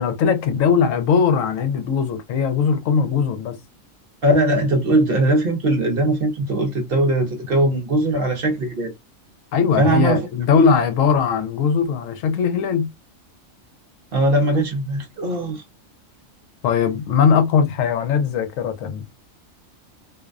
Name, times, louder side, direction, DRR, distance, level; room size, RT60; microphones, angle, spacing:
voice 1, 0.0-3.5 9.5-12.9 16.6-19.1, left 6 dB, 75° left, 0.9 m, -19 dB
voice 2, 4.2-8.9 9.8-10.2 10.5-10.7 14.1-15.6, right 1 dB, 55° right, 0.7 m, -20 dB
2.5 x 2.1 x 2.3 m
omnidirectional pair, 1.4 m